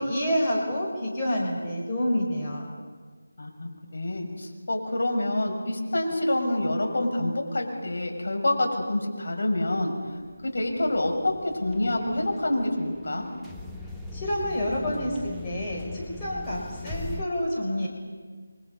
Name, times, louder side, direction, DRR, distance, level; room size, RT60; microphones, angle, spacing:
voice 1, 0.0-2.7 14.1-17.9, equal, 15° left, -5 dB, 4.9 m, -28 dB
voice 2, 3.4-9.9 10.4-13.3, left 1 dB, 60° left, 2 dB, 6.5 m, -27 dB
sound 1, 10.2-17.2, left 2 dB, ahead, 0.9 m, -40 dB
30.0 x 24.0 x 5.6 m, 1.5 s
figure-of-eight pair, 165°, 0 cm